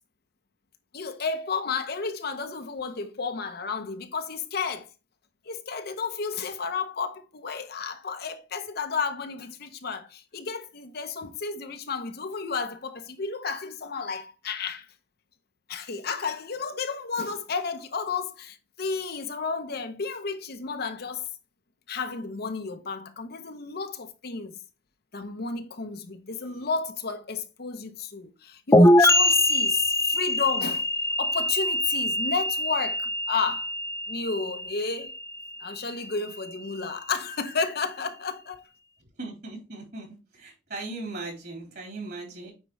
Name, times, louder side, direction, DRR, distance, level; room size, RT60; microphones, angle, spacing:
voice 1, 0.9-4.9 5.5-14.9 15.7-21.3 21.9-24.6 25.1-30.9 31.2-33.7 34.1-35.1 35.6-38.6, left 5 dB, 55° left, 0.8 m, -32 dB
sound 1, 28.7-36.3, left 1 dB, 15° left, 0.5 m, -23 dB
voice 2, 39.2-40.1 40.4-42.5, right 3 dB, 55° right, 3.8 m, -38 dB
9.0 x 4.5 x 3.1 m
head